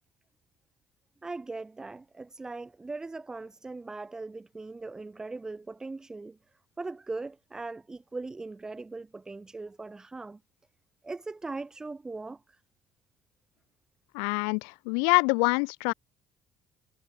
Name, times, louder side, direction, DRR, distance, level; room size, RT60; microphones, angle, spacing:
voice 1, 1.2-6.4 6.8-10.4 11.0-12.6, right 3 dB, 20° right, 2.9 m, -39 dB
voice 2, 14.1-15.9, left 40 dB or more, 65° left, 1.1 m, -25 dB
figure-of-eight pair, 55°, 3 cm